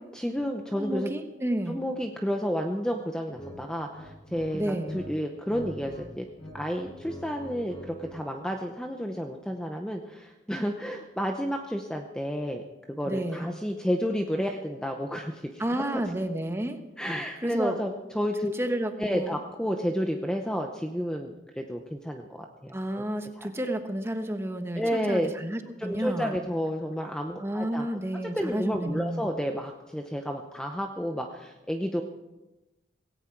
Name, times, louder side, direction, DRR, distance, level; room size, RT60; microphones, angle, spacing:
voice 1, 0.1-1.1 1.7-6.2 6.5-12.6 12.9-16.0 17.0-18.5 19.0-22.8 23.4-23.5 24.7-25.3 25.8-27.9 28.2-32.0, equal, 5° left, 3 dB, 0.8 m, -31 dB
voice 2, 0.8-1.8 4.5-5.0 13.0-13.5 15.6-16.8 17.4-17.8 18.4-19.4 22.7-26.4 27.4-29.3, right 1 dB, 15° right, 6 dB, 1.2 m, -31 dB
sound 1, 3.3-3.6 3.9-5.0 5.3-6.0 6.3-8.2, equal, 25° left, 6.9 m, -43 dB
17.5 x 17.5 x 4.7 m, 1.0 s
head